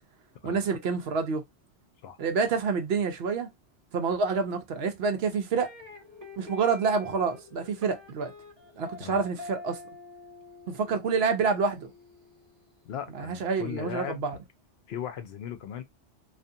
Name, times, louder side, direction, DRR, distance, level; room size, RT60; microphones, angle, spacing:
voice 1, 0.4-1.4 2.2-3.5 3.9-5.7 6.4-8.3 8.8-9.8 10.7-11.9 13.2-14.4, right 5 dB, 65° right, 0.8 m, -28 dB
sound 1, 5.6-12.7, left 3 dB, 35° right, 1.2 m, -47 dB
voice 2, 12.8-14.2 14.9-15.8, left 9 dB, 70° left, 0.8 m, -37 dB
2.5 x 2.4 x 2.6 m
omnidirectional pair, 1.2 m